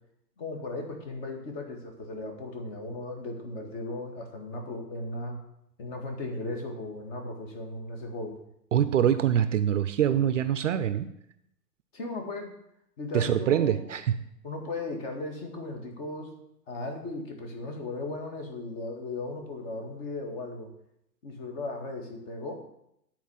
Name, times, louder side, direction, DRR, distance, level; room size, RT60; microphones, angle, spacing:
voice 1, 0.4-5.4 5.8-8.4 11.9-12.5 13.0-13.8 14.4-16.3 16.7-20.7 21.2-22.6, left 2 dB, 35° left, 3 dB, 1.9 m, -36 dB
voice 2, 8.7-11.1 13.1-14.2, right 10 dB, 50° right, 11 dB, 0.5 m, -24 dB
9.3 x 4.5 x 7.0 m, 0.77 s
hypercardioid pair, 135°, 50 cm